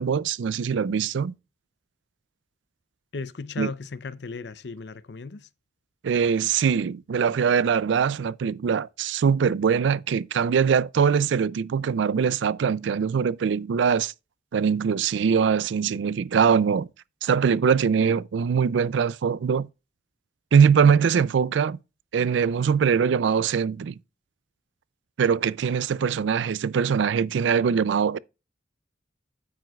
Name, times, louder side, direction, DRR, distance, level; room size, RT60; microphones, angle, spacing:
voice 1, 0.0-1.3 3.6-3.7 6.0-14.1 14.5-16.9 17.2-19.7 20.5-21.8 22.1-24.0 25.2-28.2, right 6 dB, 80° right, 0.4 m, -22 dB
voice 2, 3.1-5.5, left 4 dB, 65° left, 0.6 m, -36 dB
9.2 x 8.7 x 2.3 m
head